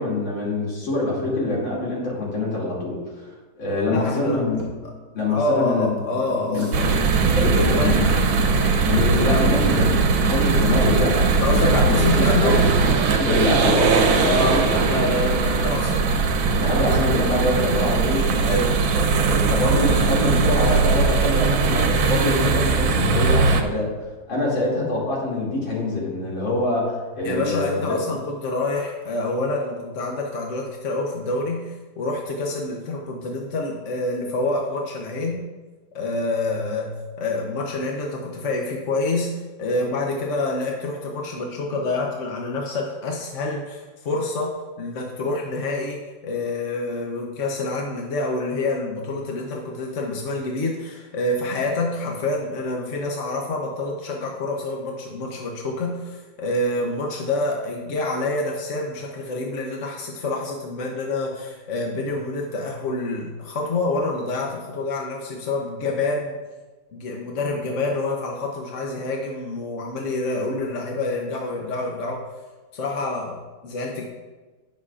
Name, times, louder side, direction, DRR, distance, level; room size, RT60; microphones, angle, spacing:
voice 1, 0.0-3.0 3.6-4.6 5.1-6.0 6.4-6.9 7.4-8.1 8.8-12.6 13.2-14.7 16.6-18.3 18.9-23.9 24.3-28.2, left 2 dB, 90° left, -4 dB, 3.5 m, -24 dB
sound 1, 2.7-3.0 4.5-4.8 6.5-6.8 8.5-8.8 10.5-10.8, right 1 dB, 35° right, 3.4 m, -41 dB
voice 2, 3.9-4.4 5.3-8.1 9.2-9.7 11.4-12.7 14.2-16.1 18.4-18.8 27.2-35.5 35.9-66.3 66.9-72.2 72.7-74.1, left 2 dB, 50° left, 0 dB, 1.0 m, -27 dB
sound 2, 6.7-23.6, right 4 dB, 85° right, 1.7 m, -20 dB
18.0 x 6.6 x 2.5 m, 1.3 s
omnidirectional pair, 2.1 m